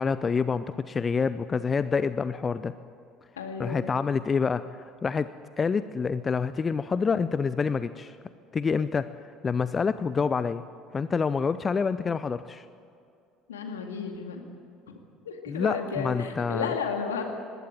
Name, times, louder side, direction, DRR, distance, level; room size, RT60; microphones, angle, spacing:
voice 1, 0.0-2.7 3.6-4.6 5.0-5.3 5.6-8.1 8.5-9.1 9.4-10.6 10.9-12.6 15.5-16.7, left 5 dB, 30° left, 14 dB, 0.6 m, -27 dB
voice 2, 3.4-3.9 13.5-14.4 14.9-15.0 15.2-17.2, left 6 dB, 75° left, 4 dB, 2.2 m, -33 dB
20.5 x 16.5 x 8.9 m, 2.6 s
figure-of-eight pair, 60°, 0 cm